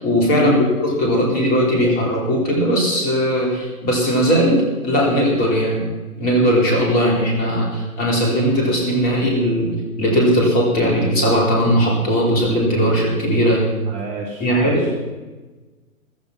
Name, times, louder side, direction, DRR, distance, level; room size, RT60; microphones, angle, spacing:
voice 1, 0.0-0.5 0.8-5.9 6.2-13.7 14.4-14.9, equal, 20° left, -1 dB, 4.0 m, -18 dB
voice 2, 13.9-14.9, right 3 dB, 15° right, 0 dB, 1.5 m, -27 dB
15.0 x 13.5 x 5.9 m, 1.2 s
figure-of-eight pair, 125°, 44 cm